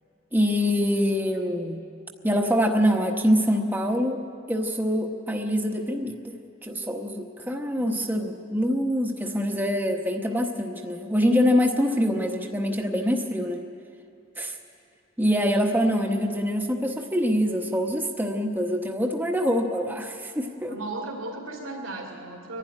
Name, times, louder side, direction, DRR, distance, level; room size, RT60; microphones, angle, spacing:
voice 1, 0.3-1.8 2.2-6.4 6.6-13.7 14.4-14.6 15.2-20.8, equal, 10° right, 1 dB, 1.0 m, -25 dB
voice 2, 7.4-8.1 20.7-22.6, right 2 dB, 85° right, -3 dB, 2.6 m, -36 dB
23.5 x 11.5 x 10.0 m, 2.5 s
head